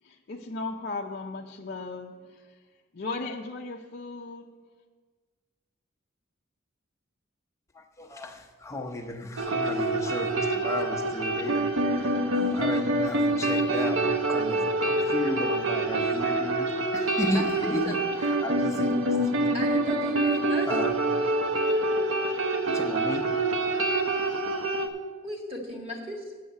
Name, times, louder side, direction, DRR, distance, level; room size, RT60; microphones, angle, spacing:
voice 1, 0.0-2.6 2.9-4.5, left 3 dB, 55° left, 0.5 m, -36 dB
voice 2, 7.7-19.5 20.7-20.9 22.6-24.6, left 1 dB, 15° left, 0.8 m, -35 dB
sound 1, 9.4-24.9, right 2 dB, 80° right, 0.8 m, -26 dB
voice 3, 17.3-18.0 19.5-20.8 25.2-26.3, equal, 30° right, 1.7 m, -36 dB
7.6 x 6.4 x 8.0 m
head